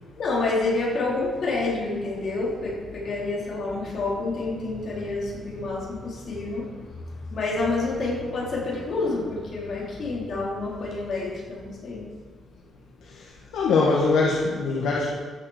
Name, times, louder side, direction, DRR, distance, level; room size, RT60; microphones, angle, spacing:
voice 1, 0.2-6.7 7.3-12.0, left 3 dB, 45° left, -4 dB, 3.6 m, -28 dB
voice 2, 13.5-15.1, left 3 dB, 90° left, -4 dB, 1.7 m, -22 dB
14.5 x 6.4 x 5.0 m, 1.5 s
cardioid pair, 170°, 0 cm